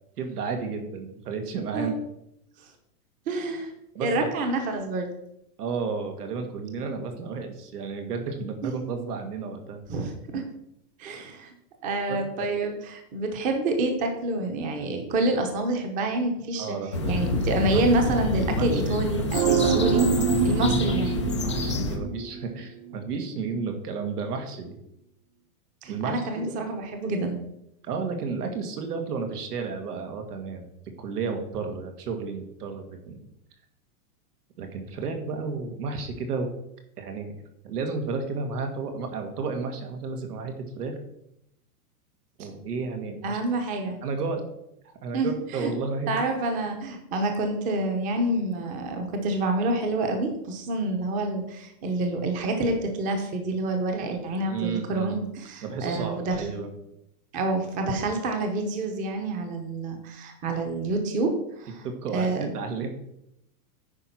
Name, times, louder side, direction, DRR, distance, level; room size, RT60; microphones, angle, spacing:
voice 1, 0.2-2.0 4.0-4.3 5.6-9.8 12.1-12.5 16.6-17.2 17.7-17.8 18.5-19.1 19.3-20.1 20.9-24.8 25.9-26.5 27.8-30.7 31.0-33.2 34.6-36.5 37.0-37.4 37.6-40.9 42.4-43.4 44.0-44.4 44.8-46.2 54.5-55.2 55.6-56.7 61.8-62.9, right 4 dB, 90° right, 5 dB, 2.2 m, -32 dB
voice 2, 3.3-3.7 4.0-5.1 8.6-8.7 9.9-10.4 11.0-11.5 11.8-16.8 17.1-20.0 20.4-21.2 25.8-27.4 43.2-44.0 45.1-45.7 46.1-56.4 57.3-61.8 62.1-62.5, right 2 dB, 20° right, 5 dB, 0.9 m, -27 dB
sound 1, 16.9-22.0, left 3 dB, 25° left, 0.3 m, -27 dB
sound 2, 19.3-22.6 22.9-23.0, right 6 dB, 40° right, 0.5 m, -25 dB
9.7 x 4.7 x 5.9 m, 0.80 s
supercardioid pair, 165°, 45 cm